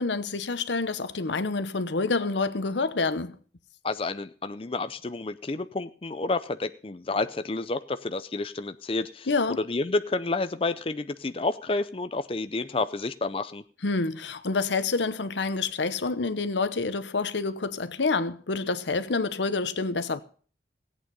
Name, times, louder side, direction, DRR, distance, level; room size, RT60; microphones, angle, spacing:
voice 1, 0.0-3.4 9.3-9.6 13.8-20.2, left 3 dB, 90° left, 0.9 m, -27 dB
voice 2, 3.8-9.3 9.6-13.6, left 3 dB, 30° left, 0.5 m, -30 dB
16.5 x 8.8 x 5.4 m
head